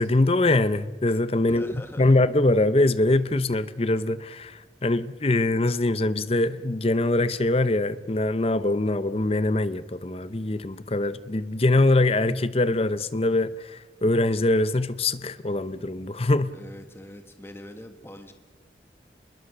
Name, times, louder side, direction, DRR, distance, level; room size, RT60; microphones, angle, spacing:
voice 1, 0.0-16.5, left 2 dB, 30° left, 0.7 m, -23 dB
voice 2, 1.4-2.1 16.5-18.3, left 1 dB, 15° left, 1.5 m, -42 dB
26.0 x 21.5 x 6.8 m
head